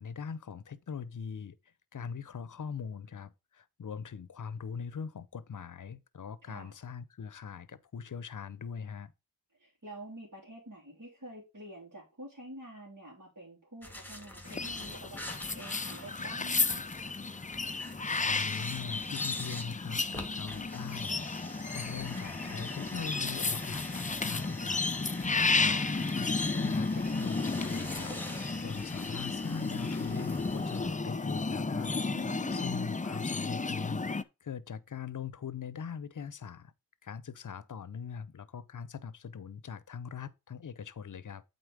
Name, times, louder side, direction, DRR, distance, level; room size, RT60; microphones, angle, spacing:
voice 1, 0.0-1.6 1.9-9.1 18.2-34.0 34.4-36.7 37.0-41.4, left 6 dB, 60° left, 0.7 m, -42 dB
voice 2, 6.4-6.8 9.6-16.8 25.2-25.5 32.1-32.7, right 1 dB, 60° right, 3.1 m, -48 dB
sound 1, 13.8-31.0, left 1 dB, 5° left, 2.1 m, -46 dB
sound 2, 14.5-34.2, left 3 dB, 20° left, 0.5 m, -33 dB
8.0 x 4.3 x 4.9 m
wide cardioid pair, 45°, 35 cm